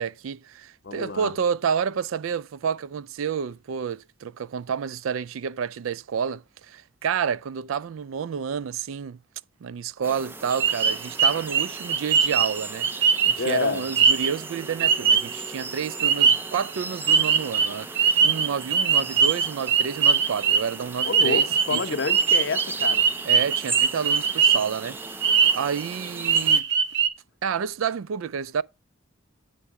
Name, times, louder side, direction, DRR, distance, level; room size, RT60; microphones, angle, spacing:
voice 1, 0.0-9.2 9.6-12.9 13.3-22.0 23.3-25.0 25.5-26.6 27.4-28.6, right 7 dB, 90° right, 0.4 m, -29 dB
voice 2, 0.8-1.3 13.4-13.8 21.0-23.1, left 4 dB, 60° left, 0.7 m, -28 dB
sound 1, 10.0-26.6, right 3 dB, 10° right, 0.3 m, -38 dB
sound 2, 10.6-15.5 16.0-16.8 17.1-24.8 25.1-25.9 26.2-27.1, right 6 dB, 55° right, 0.7 m, -21 dB
8.2 x 5.6 x 4.7 m
head